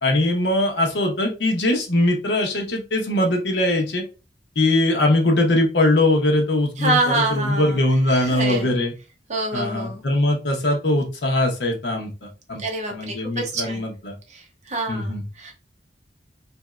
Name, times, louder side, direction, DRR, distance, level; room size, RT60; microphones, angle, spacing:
voice 1, 0.0-4.0 4.6-8.9 9.5-12.6 12.9-14.1 14.9-15.2, left 1 dB, 70° left, 1 dB, 0.9 m, -21 dB
voice 2, 6.8-7.8 8.1-8.8 9.3-10.0 12.6-13.8 14.3-15.1 15.4-15.5, right 2 dB, 40° right, 3 dB, 0.8 m, -26 dB
3.1 x 2.6 x 2.3 m, 0.31 s
head